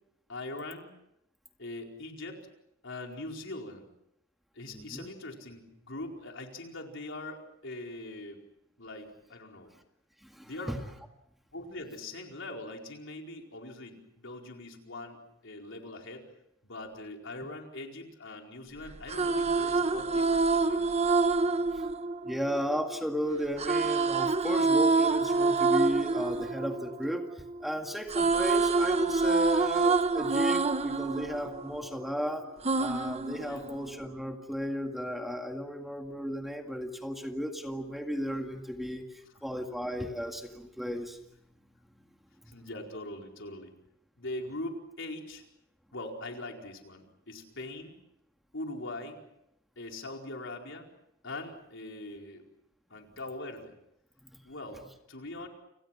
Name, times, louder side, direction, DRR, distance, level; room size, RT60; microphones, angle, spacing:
voice 1, 0.3-0.9 1.6-2.4 2.8-3.9 4.5-8.4 8.8-9.7 10.4-10.8 11.5-16.3 16.6-21.0 33.4-33.7 42.5-43.7 44.2-45.4 45.9-48.0 48.5-49.2 49.8-50.9 51.2-52.4 52.9-53.7 54.4-54.8 55.1-55.5, left 2 dB, 65° left, 2 dB, 4.7 m, -42 dB
voice 2, 4.7-5.1 10.2-10.8 21.7-21.8 22.2-27.2 27.6-32.5 32.8-39.1 39.4-41.2 42.4-42.5, equal, ahead, 4 dB, 2.0 m, -34 dB
sound 1, 18.9-23.0 23.6-27.6 27.9-32.1 32.6-34.1, right 3 dB, 30° right, 1.0 m, -27 dB
30.0 x 27.5 x 6.0 m, 0.80 s
head